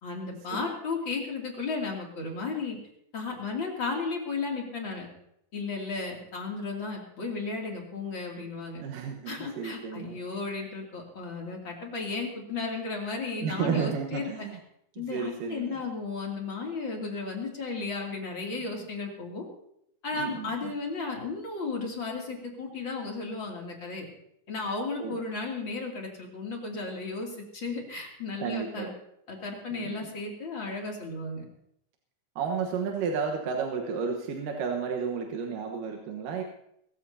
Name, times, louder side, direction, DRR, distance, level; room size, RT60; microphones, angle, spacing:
voice 1, 0.0-2.8 3.1-5.1 5.5-8.8 9.3-14.3 15.0-19.5 20.0-24.1 24.5-28.9 29.3-31.4, left 4 dB, 40° left, -1 dB, 3.2 m, -34 dB
voice 2, 8.8-10.2 13.4-14.6 14.9-15.8 20.1-20.7 25.0-25.2 28.4-28.9 29.7-30.1 32.4-36.4, right 6 dB, 90° right, 2 dB, 2.9 m, -32 dB
23.5 x 14.0 x 2.8 m, 0.75 s
omnidirectional pair, 3.7 m